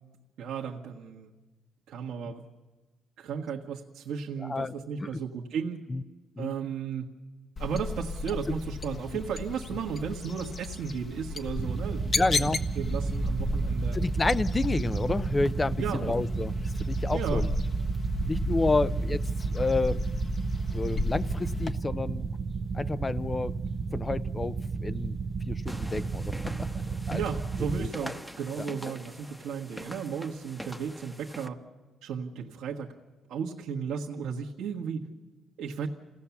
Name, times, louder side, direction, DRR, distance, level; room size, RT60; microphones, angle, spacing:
voice 1, 0.4-1.3 1.9-2.4 3.2-5.8 6.4-7.1 7.6-14.0 15.8-16.1 17.1-17.4 27.1-31.6 32.0-32.9 33.3-35.1 35.6-35.9, right 6 dB, 80° right, -3 dB, 1.5 m, -34 dB
voice 2, 4.4-4.7 5.0-5.2 5.9-6.0 6.4-6.5 8.5-8.6 12.2-12.6 13.9-17.5 18.3-19.2 19.5-20.0 20.7-22.3 22.7-23.5 23.9-25.2 25.4-26.7 27.1-27.2 27.8-28.1, left 3 dB, 25° left, 16 dB, 0.6 m, -30 dB
sound 1, 7.6-21.7, left 3 dB, 40° left, 1.4 m, -36 dB
sound 2, 11.6-27.9, right 4 dB, 40° right, 0.7 m, -31 dB
sound 3, 25.7-31.5, equal, 5° left, 1.1 m, -44 dB
28.0 x 17.0 x 7.2 m, 1.3 s
cardioid pair, 90°, 0 cm